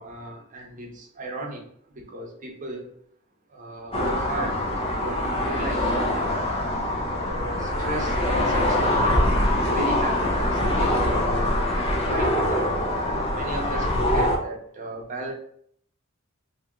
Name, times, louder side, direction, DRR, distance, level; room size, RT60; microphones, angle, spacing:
voice 1, 0.0-1.6 1.9-2.9 3.5-5.9 6.3-6.4 7.3-9.2 9.6-11.6 12.0-12.7 13.3-15.3, right 1 dB, 40° right, 0 dB, 0.8 m, -35 dB
sound 1, 3.9-14.4, left 1 dB, 30° left, 0.7 m, -24 dB
2.9 x 2.9 x 3.6 m, 0.65 s
head